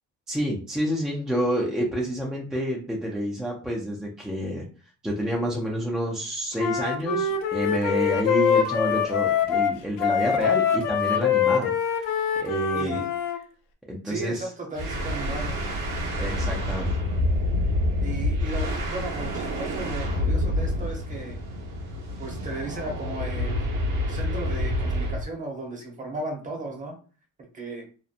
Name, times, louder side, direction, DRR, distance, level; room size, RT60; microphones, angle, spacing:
voice 1, 0.3-4.6 5.0-12.1 12.4-13.0 13.9-14.5 16.2-16.9, equal, ahead, -3 dB, 0.3 m, -28 dB
Wind instrument woodwind instrument, 6.6-13.4, left 7 dB, 70° left, 0.5 m, -24 dB
voice 2, 12.7-13.5 14.0-15.5 18.0-21.4 22.2-23.6 24.1-27.0 27.5-27.8, right 2 dB, 25° right, 2 dB, 0.7 m, -35 dB
sound 1, 14.7-25.3, left 1 dB, 75° right, 1.0 m, -27 dB
2.7 x 2.0 x 2.4 m, 0.39 s
cardioid pair, 135°, 33 cm